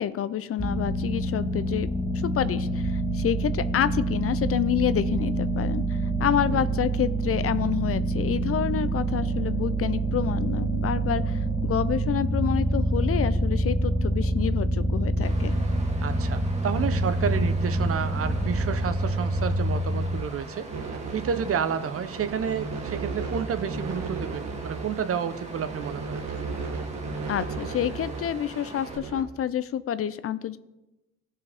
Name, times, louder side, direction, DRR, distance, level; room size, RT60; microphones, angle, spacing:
voice 1, 0.0-1.9 2.2-15.6 27.3-30.6, left 10 dB, 50° left, 15 dB, 0.5 m, -28 dB
sound 1, 0.6-20.2, right 1 dB, 5° right, 1.1 m, -26 dB
Water, 15.2-29.0, right 1 dB, 25° right, 1.8 m, -42 dB
voice 2, 16.0-20.7 21.1-26.3, right 7 dB, 50° right, 11 dB, 0.8 m, -30 dB
sound 2, 20.7-29.2, right 4 dB, 65° right, 1.4 m, -35 dB
16.5 x 5.6 x 3.5 m, 0.99 s
cardioid pair, 90°, 30 cm